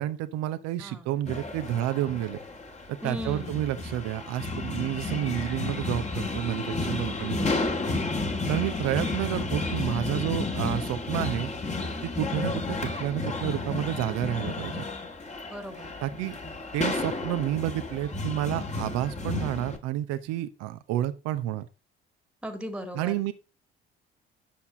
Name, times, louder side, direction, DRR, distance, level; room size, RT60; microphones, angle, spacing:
voice 1, 0.0-2.4 2.9-7.5 8.5-11.5 12.0-14.8 16.0-16.4 16.7-21.7 22.9-23.3, right 13 dB, 55° right, 11 dB, 1.0 m, -30 dB
voice 2, 0.8-1.1 3.0-3.6 15.4-15.9 22.4-23.2, equal, 5° right, 6 dB, 1.9 m, -37 dB
sound 1, 1.2-19.8, left 3 dB, 20° left, 1.9 m, -32 dB
10.5 x 7.1 x 3.9 m, 0.28 s
figure-of-eight pair, 50°, 30 cm